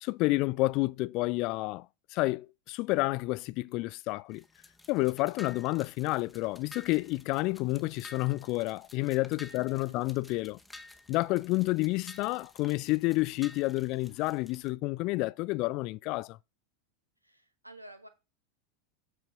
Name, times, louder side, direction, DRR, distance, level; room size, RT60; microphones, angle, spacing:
voice 1, 0.0-1.9 2.1-4.4 4.9-10.6 11.1-16.4, left 21 dB, 45° left, 0.4 m, -30 dB
sound 1, 4.3-14.7, left 2 dB, 10° left, 0.9 m, -53 dB
voice 2, 17.2-18.1, right 1 dB, 90° right, 1.2 m, -51 dB
8.1 x 4.4 x 5.1 m
figure-of-eight pair, 85°, 0 cm